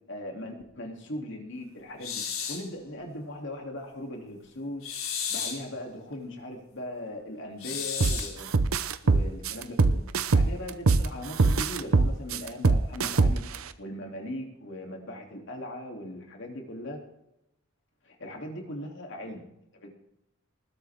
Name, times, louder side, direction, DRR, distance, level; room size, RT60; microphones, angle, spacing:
voice 1, 0.1-2.2 2.5-5.0 5.3-8.5 9.0-10.0 10.3-13.4 13.8-17.0 18.0-19.4 19.7-19.9, left 1 dB, 60° left, 2 dB, 2.9 m, -39 dB
sound 1, 2.0-2.7 4.8-5.7 7.6-8.4, left 7 dB, 75° left, 3.2 m, -33 dB
sound 2, 8.0-8.2 8.5-11.1 11.4-13.6, right 3 dB, 80° right, 0.8 m, -21 dB
20.0 x 12.5 x 3.6 m, 0.84 s
head